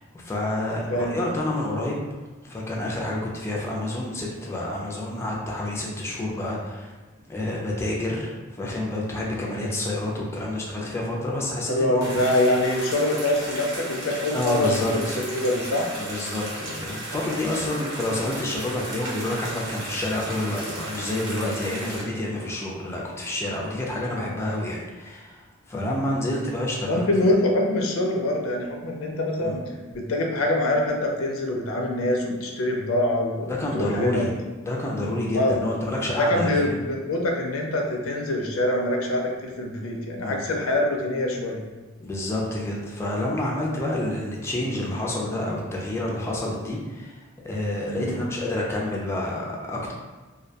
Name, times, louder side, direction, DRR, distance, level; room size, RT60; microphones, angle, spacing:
voice 1, 0.0-2.0 2.4-6.9 7.3-12.1 14.3-15.2 16.0-27.0 29.4-29.6 33.6-34.3 34.6-36.8 40.2-40.5 42.0-49.9, left 1 dB, 15° left, -3 dB, 0.3 m, -28 dB
voice 2, 0.9-1.2 11.7-14.7 15.2-15.8 26.9-29.6 29.9-34.3 35.3-35.6 36.2-41.6 47.9-48.2, left 1 dB, 90° left, 1 dB, 0.4 m, -24 dB
sound 1, 12.0-22.0, right 1 dB, 60° right, 0.8 m, -35 dB
2.2 x 2.1 x 2.7 m, 1.3 s
head